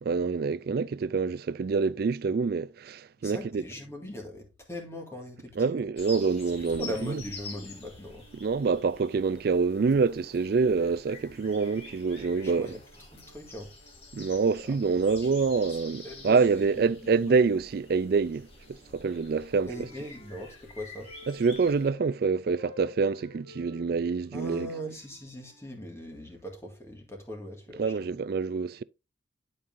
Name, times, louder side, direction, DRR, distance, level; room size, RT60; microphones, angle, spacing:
voice 1, 0.0-3.6 5.6-7.2 8.3-12.7 14.1-18.5 18.9-19.7 21.3-24.7 27.8-28.8, right 4 dB, 50° right, 0.3 m, -26 dB
voice 2, 3.2-5.8 6.8-8.2 12.2-12.8 13.1-13.7 14.7-15.3 16.0-17.4 19.7-21.1 24.3-28.1, equal, 15° left, 1.9 m, -40 dB
sound 1, 6.0-21.9, left 3 dB, 30° left, 2.1 m, -48 dB
Wind instrument woodwind instrument, 18.9-22.2 22.5-26.2, left 3 dB, 85° left, 3.3 m, -53 dB
11.5 x 5.4 x 2.6 m
head